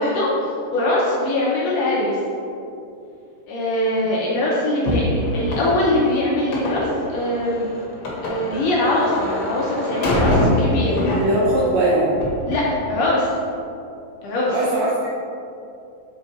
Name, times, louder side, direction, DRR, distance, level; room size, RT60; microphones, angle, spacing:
voice 1, 0.0-2.2 3.5-7.7 8.2-11.0 12.5-13.3 14.2-14.5, left 1 dB, 75° left, -5 dB, 1.5 m, -22 dB
sound 1, 4.9-11.7 12.1-12.7, left 1 dB, 60° left, 1.5 m, -24 dB
voice 2, 11.2-12.2 14.5-15.1, right 1 dB, 80° right, -5 dB, 1.5 m, -20 dB
6.6 x 3.7 x 4.2 m, 2.6 s
omnidirectional pair, 4.0 m